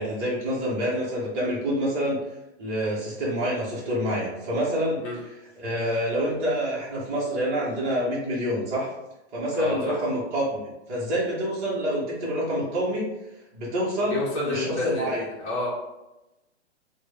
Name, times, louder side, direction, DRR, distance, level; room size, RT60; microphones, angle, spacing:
voice 1, 0.0-2.2 2.6-5.0 5.6-8.9 9.3-13.1 13.5-15.2, equal, 20° right, -6 dB, 0.8 m, -27 dB
voice 2, 9.5-10.0 14.1-15.7, left 2 dB, 30° left, -6 dB, 1.0 m, -29 dB
3.2 x 2.1 x 3.2 m, 0.96 s
hypercardioid pair, 160°, 36 cm